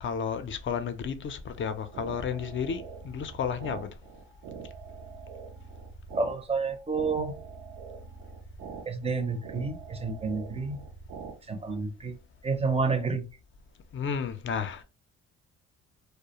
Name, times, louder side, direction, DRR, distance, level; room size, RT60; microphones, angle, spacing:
voice 1, 0.0-3.9 13.9-14.8, left 6 dB, 40° left, 0.5 m, -32 dB
sound 1, 1.6-11.3, right 5 dB, 80° right, 0.5 m, -44 dB
voice 2, 6.1-7.4 8.9-10.8 11.5-12.2 12.4-13.3, right 4 dB, 20° right, 0.5 m, -29 dB
2.3 x 2.1 x 2.8 m
cardioid pair, 90°, 30 cm